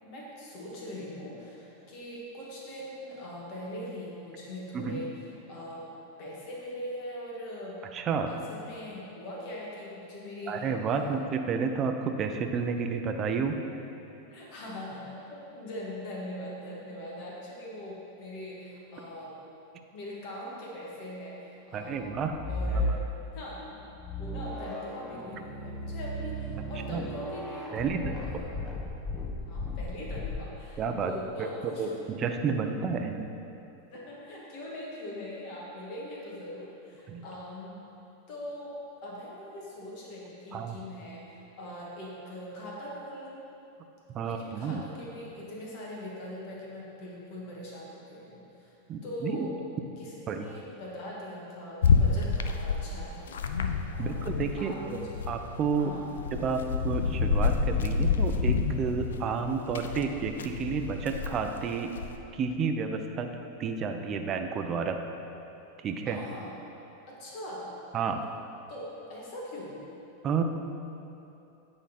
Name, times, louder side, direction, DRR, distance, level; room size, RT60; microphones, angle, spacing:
voice 1, 0.0-5.9 6.2-7.8 8.3-11.2 14.3-19.3 19.9-22.1 22.5-23.0 23.3-23.8 24.2-28.6 29.4-32.1 33.9-37.7 38.3-38.7 39.0-43.4 44.2-48.8 49.0-49.5 50.0-53.3 53.9-54.3 54.6-55.1 55.8-56.1 66.0-66.6 67.1-67.8 68.7-69.8, left 1 dB, 55° left, -4 dB, 1.6 m, -41 dB
voice 2, 7.9-8.3 10.5-13.6 21.7-22.4 22.7-23.0 26.9-27.1 27.7-28.4 30.8-31.1 31.8-33.3 37.1-37.2 40.5-40.8 44.1-44.8 48.9-49.5 50.3-50.4 54.0-55.9 56.3-61.9 62.3-63.3 63.6-65.0 65.8-66.2 67.9-68.2 70.2-70.4, right 5 dB, 35° right, 6 dB, 0.5 m, -31 dB
sound 1, 21.9-23.3 23.8-30.8, left 1 dB, 20° left, 0.9 m, -35 dB
sound 2, 51.8-54.6 54.9-62.1, left 5 dB, 90° left, 0.4 m, -28 dB
9.0 x 3.8 x 4.3 m, 2.8 s
hypercardioid pair, 115°, 0 cm